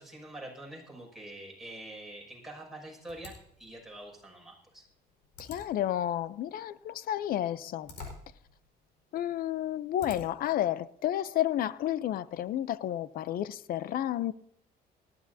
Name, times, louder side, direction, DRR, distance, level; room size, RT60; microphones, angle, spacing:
voice 1, 0.0-4.8, right 1 dB, ahead, 6.4 m, -45 dB
sound 1, 3.1-10.5, left 4 dB, 90° left, 4.8 m, -51 dB
voice 2, 5.5-7.9 9.1-14.3, left 12 dB, 60° left, 0.6 m, -31 dB
19.5 x 14.5 x 2.8 m
cardioid pair, 110°, 17 cm